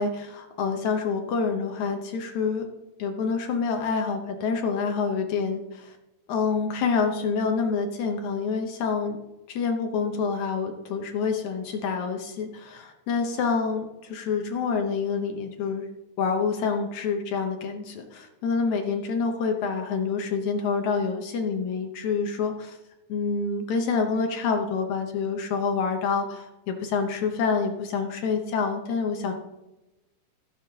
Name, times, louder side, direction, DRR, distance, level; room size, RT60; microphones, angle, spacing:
voice 1, 0.0-2.7 3.0-6.0 6.3-9.2 9.5-15.9 16.2-22.8 23.1-29.3, left 5 dB, 65° left, 4 dB, 2.0 m, -27 dB
14.5 x 10.0 x 2.8 m, 0.98 s
omnidirectional pair, 4.2 m